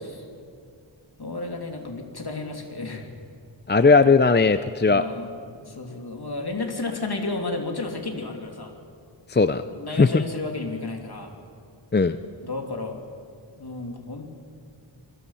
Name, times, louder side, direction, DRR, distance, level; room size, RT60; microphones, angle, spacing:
voice 1, 1.2-3.1 4.8-8.7 9.7-11.4 12.4-13.0 13.6-14.3, left 3 dB, 55° left, 3 dB, 2.9 m, -32 dB
voice 2, 3.7-5.0 9.3-9.6 10.0-10.2 11.9-12.2, left 4 dB, 25° left, 11 dB, 0.6 m, -18 dB
27.5 x 21.5 x 5.7 m, 2.3 s
wide cardioid pair, 75°, 47 cm